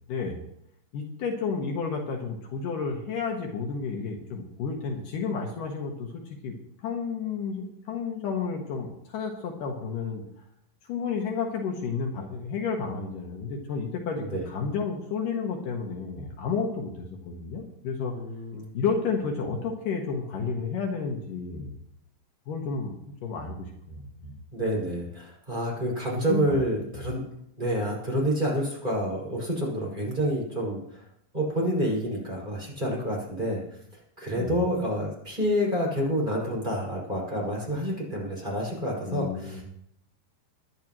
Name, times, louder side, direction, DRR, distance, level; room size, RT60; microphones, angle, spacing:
voice 1, 0.9-6.5 6.8-10.2 10.9-18.1 18.7-21.7 22.5-22.9 23.2-24.4 26.3-26.6 26.9-27.0 34.4-34.5 39.1-39.6, left 5 dB, 70° left, 1 dB, 3.0 m, -31 dB
voice 2, 18.1-18.7 24.5-27.2 27.6-31.1 31.3-33.6 34.2-39.6, equal, 10° right, -4 dB, 5.7 m, -28 dB
24.5 x 10.5 x 3.1 m, 0.72 s
omnidirectional pair, 4.0 m